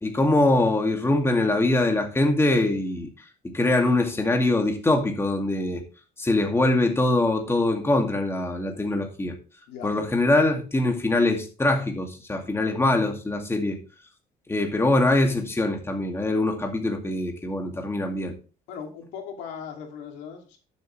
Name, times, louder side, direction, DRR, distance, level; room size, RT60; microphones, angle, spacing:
voice 1, 0.0-3.1 3.4-5.8 6.2-9.3 9.8-13.8 14.5-18.3, left 2 dB, 15° left, 2.2 m, -23 dB
voice 2, 9.7-10.0 18.7-20.6, left 7 dB, 90° left, 2.7 m, -38 dB
11.5 x 7.4 x 3.3 m
cardioid pair, 110°, 17 cm